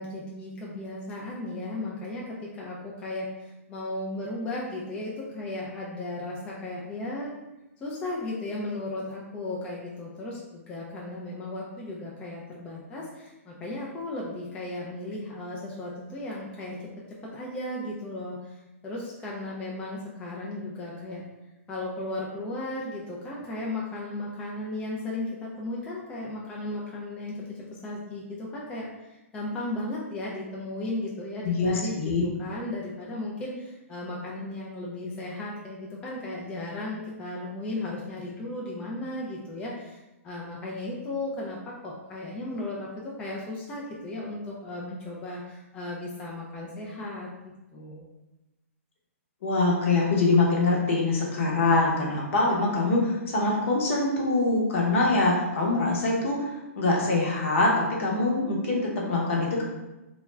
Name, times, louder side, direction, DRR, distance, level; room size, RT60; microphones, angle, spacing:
voice 1, 0.0-7.3 7.8-21.2 21.7-48.1, left 2 dB, 15° left, -4 dB, 0.3 m, -35 dB
voice 2, 31.4-32.3 49.4-56.5 56.7-59.6, left 2 dB, 60° left, -2 dB, 0.8 m, -24 dB
2.3 x 2.2 x 3.1 m, 1.0 s
hypercardioid pair, 145°, 8 cm